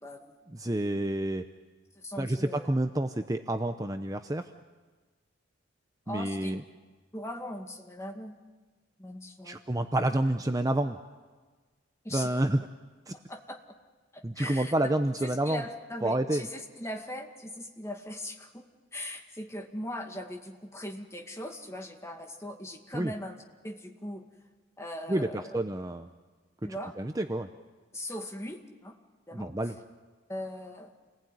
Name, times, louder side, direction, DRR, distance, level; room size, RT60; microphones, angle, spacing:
voice 1, 0.0-0.4 2.0-2.7 6.1-6.6 7.1-8.3 9.0-9.6 12.0-12.3 13.1-13.6 14.1-14.7 15.2-18.7 18.9-24.3 24.8-25.6 26.6-27.0 27.9-29.0 29.3-29.5 30.3-31.0, left 1 dB, 15° left, 3 dB, 2.2 m, -40 dB
voice 2, 0.5-1.5 2.2-4.5 6.1-6.6 9.5-11.0 12.1-12.6 13.1-13.2 14.2-15.6 16.0-16.4 22.9-23.1 25.1-26.1 27.0-27.5 29.3-29.7, right 1 dB, 20° right, 7 dB, 0.7 m, -29 dB
29.0 x 20.0 x 9.4 m, 1.4 s
head